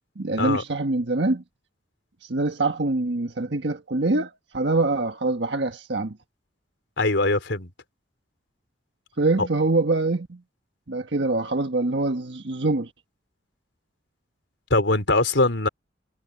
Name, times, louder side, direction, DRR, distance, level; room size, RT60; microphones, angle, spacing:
voice 1, 0.2-1.4 2.2-6.2 9.2-10.4 10.9-12.9, right 2 dB, 70° right, 1.4 m, -24 dB
voice 2, 7.0-7.7 9.4-9.5 14.7-15.7, left 2 dB, 85° left, 3.7 m, -22 dB
head